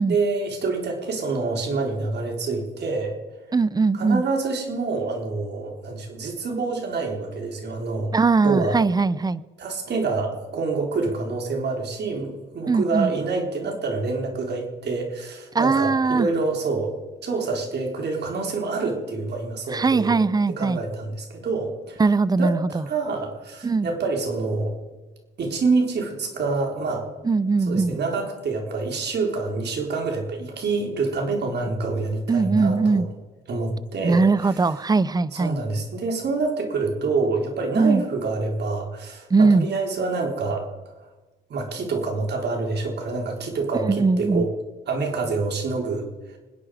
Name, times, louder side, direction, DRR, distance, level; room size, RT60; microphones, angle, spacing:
voice 1, 0.1-3.2 3.9-8.1 8.4-8.8 9.6-16.9 17.2-20.2 20.5-22.0 22.4-24.8 25.4-27.1 27.7-33.0 33.5-34.2 35.3-40.7 41.5-44.5 44.9-46.4, right 3 dB, 60° right, 2 dB, 4.1 m, -27 dB
voice 2, 3.5-4.2 8.1-9.4 12.7-13.1 15.5-16.3 19.7-20.8 22.0-22.8 23.6-23.9 27.2-28.0 32.3-33.1 34.0-35.6 37.8-38.0 39.3-39.7 43.7-44.4, right 4 dB, 20° right, 19 dB, 0.6 m, -20 dB
26.0 x 10.5 x 5.0 m, 1.2 s
cardioid pair, 90°, 20 cm